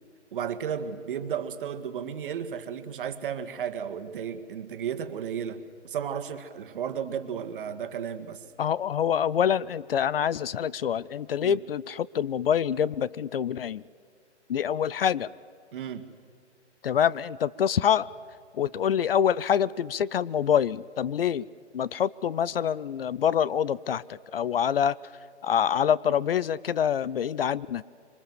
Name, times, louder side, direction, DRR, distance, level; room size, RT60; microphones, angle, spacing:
voice 1, 0.3-8.4 11.4-11.6 15.7-16.1, right 8 dB, 50° right, 8 dB, 1.9 m, -34 dB
voice 2, 8.6-13.8 14.5-15.3 16.8-18.1 18.5-21.4 21.7-25.0 25.4-27.8, left 8 dB, 55° left, 21 dB, 0.6 m, -26 dB
26.0 x 24.5 x 7.7 m, 2.2 s
figure-of-eight pair, 135°, 35 cm